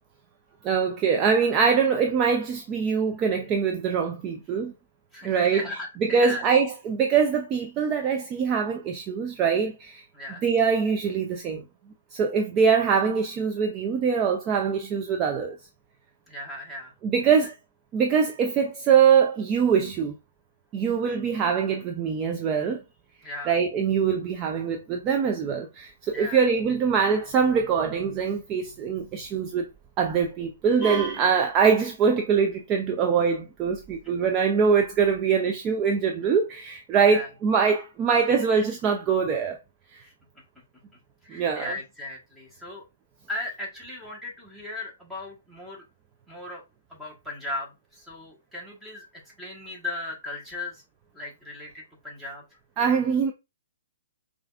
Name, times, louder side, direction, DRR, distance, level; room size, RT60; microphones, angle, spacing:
voice 1, 0.6-4.7 5.2-10.0 10.4-11.6 12.1-15.6 17.0-17.6 17.9-20.1 20.7-22.8 23.5-29.7 30.0-39.6 39.9-40.0 41.3-41.7 52.8-53.3, right 6 dB, 25° right, 0.4 m, -23 dB
voice 2, 5.1-6.4 10.1-10.4 16.3-16.9 23.2-23.5 26.1-26.4 37.1-37.3 41.2-42.8 43.3-45.8 46.3-46.6 46.9-49.1 49.4-50.8 51.1-52.4, left 2 dB, 5° right, 1.2 m, -37 dB
4.7 x 2.4 x 2.3 m
hypercardioid pair, 135°, 0 cm